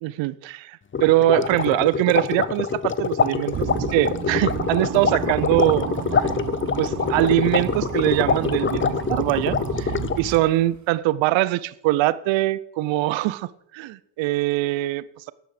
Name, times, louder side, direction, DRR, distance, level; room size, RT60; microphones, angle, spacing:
voice 1, 0.0-5.9 6.1-6.2 6.8-15.3, right 16 dB, 75° right, 19 dB, 0.7 m, -23 dB
sound 1, 0.9-10.4, left 6 dB, 25° left, 0.8 m, -25 dB
sound 2, 3.5-10.8, right 8 dB, 40° right, 1.2 m, -31 dB
12.0 x 10.5 x 5.0 m, 0.73 s
supercardioid pair, 60°, 45 cm